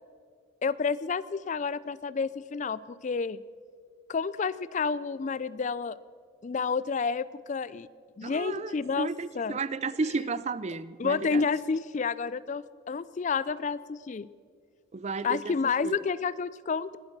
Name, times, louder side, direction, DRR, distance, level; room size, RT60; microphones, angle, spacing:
voice 1, 0.6-3.4 4.1-6.0 6.4-7.9 8.2-9.1 9.4-9.6 11.0-14.3 15.2-17.0, left 5 dB, 35° left, 18 dB, 0.3 m, -30 dB
voice 2, 8.2-11.5 14.9-15.6 15.8-16.0, right 4 dB, 35° right, 17 dB, 0.4 m, -33 dB
20.5 x 11.5 x 6.0 m, 2.1 s
head